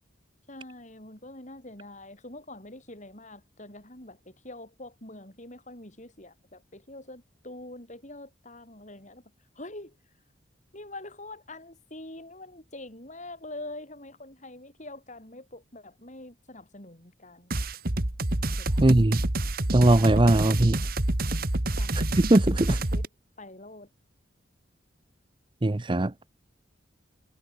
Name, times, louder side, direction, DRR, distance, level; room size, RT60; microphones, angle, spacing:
voice 1, 0.5-9.2 9.6-10.0 10.7-17.6 18.6-19.0 21.8-22.0 22.7-23.0 23.4-23.9, left 2 dB, 40° left, 7.4 m, -44 dB
sound 1, 17.5-23.1, right 1 dB, 50° right, 1.9 m, -27 dB
voice 2, 18.8-19.2 19.7-20.8 22.2-22.7 25.6-26.1, right 1 dB, 25° right, 0.7 m, -20 dB
head